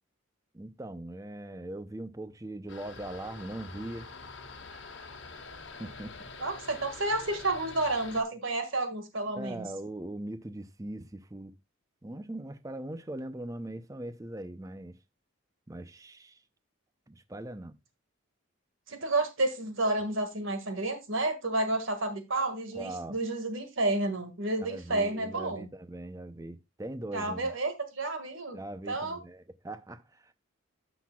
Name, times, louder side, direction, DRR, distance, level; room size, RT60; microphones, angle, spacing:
voice 1, 0.5-4.1 5.8-6.3 9.3-11.5 12.0-15.0 15.7-16.4 17.1-17.8 22.7-23.2 24.6-27.5 28.5-30.3, right 1 dB, 15° right, 0.5 m, -40 dB
sound 1, 2.7-8.2, left 4 dB, 60° left, 1.3 m, -46 dB
voice 2, 6.4-9.7 18.9-25.7 27.1-28.6 28.9-29.2, right 2 dB, 70° right, 1.8 m, -30 dB
13.5 x 5.9 x 2.3 m
head